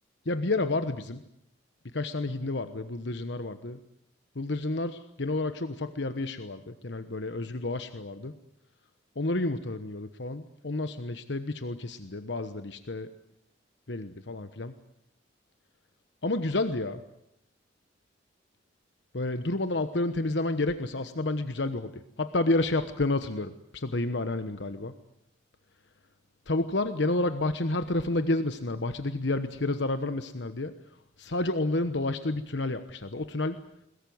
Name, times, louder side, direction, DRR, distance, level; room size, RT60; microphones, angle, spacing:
voice 1, 0.2-1.2 1.9-3.8 4.3-8.3 9.2-13.1 13.9-14.7 16.2-17.0 19.1-24.9 26.5-30.8 31.2-33.6, left 2 dB, 70° left, 10 dB, 1.1 m, -30 dB
22.0 x 21.5 x 9.5 m, 0.80 s
head